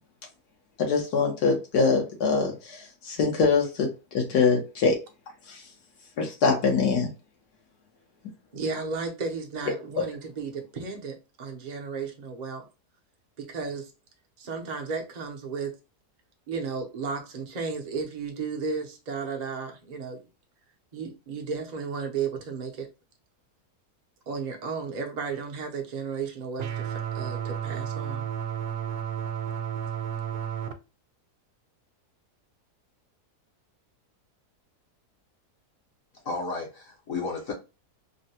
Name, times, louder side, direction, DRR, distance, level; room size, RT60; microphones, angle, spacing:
voice 1, 0.8-5.0 5.5-5.6 6.2-7.1 10.0-10.1, left 4 dB, 75° left, 1.5 m, -24 dB
voice 2, 8.5-12.6 13.4-13.9 14.4-15.7 16.5-20.2 20.9-22.9 24.3-28.2, right 5 dB, 40° right, 0.6 m, -34 dB
sound 1, 26.6-30.7, right 9 dB, 70° right, 1.0 m, -32 dB
voice 3, 36.2-37.5, left 3 dB, 60° left, 1.1 m, -32 dB
3.7 x 2.2 x 2.8 m
omnidirectional pair, 1.7 m